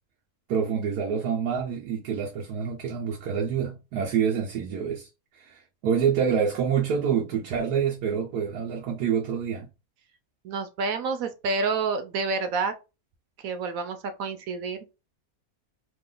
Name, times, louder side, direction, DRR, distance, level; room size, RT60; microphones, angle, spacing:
voice 1, 0.5-9.7, right 7 dB, 85° right, 1.3 m, -27 dB
voice 2, 10.4-12.7 13.4-14.8, right 4 dB, 70° right, 1.0 m, -28 dB
3.0 x 2.5 x 3.7 m
omnidirectional pair, 1.6 m